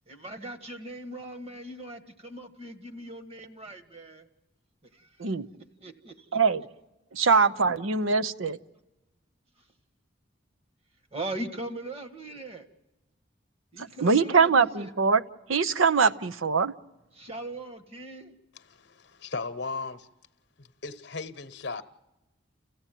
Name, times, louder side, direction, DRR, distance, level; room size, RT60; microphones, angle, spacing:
voice 1, 0.1-4.3 4.9-5.3 5.8-6.4 7.6-7.7 11.1-12.7 13.7-14.9 16.0-16.1 17.1-18.3, right 2 dB, 30° right, 1.4 m, -40 dB
voice 2, 7.1-8.6 13.8-15.2 15.5-16.7, right 5 dB, 85° right, 0.7 m, -23 dB
voice 3, 18.6-20.1 20.6-21.8, left 4 dB, 55° left, 1.0 m, -37 dB
30.0 x 15.0 x 9.1 m
head